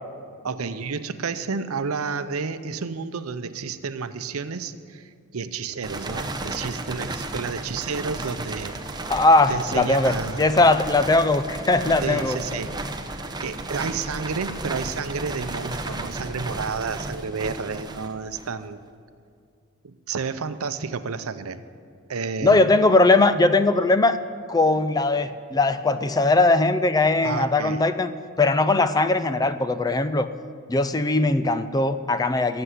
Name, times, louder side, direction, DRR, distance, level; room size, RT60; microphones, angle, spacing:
voice 1, 0.4-8.7 9.5-10.5 12.0-12.8 13.4-18.8 19.8-21.6 22.1-22.6 27.2-27.8, right 5 dB, 85° right, 12 dB, 0.6 m, -31 dB
sound 1, 5.8-18.7, right 2 dB, 20° right, 0.8 m, -34 dB
voice 2, 9.1-12.4 22.4-24.2 24.5-28.1 28.4-30.3 30.7-32.6, left 2 dB, 20° left, 12 dB, 0.5 m, -20 dB
13.5 x 7.8 x 9.8 m, 2.3 s
head